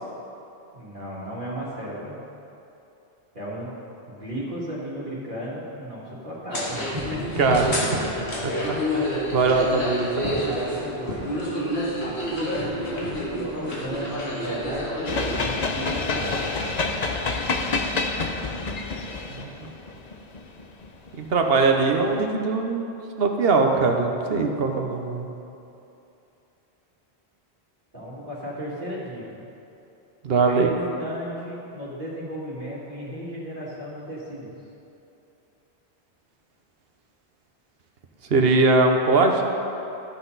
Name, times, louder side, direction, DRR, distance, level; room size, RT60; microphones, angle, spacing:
voice 1, 0.7-2.2 3.3-3.7 4.1-7.2 10.2-11.2 12.0-16.5 27.9-29.4 30.5-34.5, equal, 50° right, -8 dB, 2.5 m, -34 dB
sound 1, 6.5-15.4, equal, 80° left, 2.0 m, -29 dB
voice 2, 7.4-8.1 8.9-10.3 19.3-19.5 21.2-22.9 23.2-25.3 30.2-30.7 38.3-39.5, right 3 dB, 65° right, 3 dB, 1.0 m, -21 dB
sound 2, 15.1-21.4, left 3 dB, 45° left, 0.7 m, -28 dB
14.0 x 5.9 x 4.0 m, 2.8 s
omnidirectional pair, 1.1 m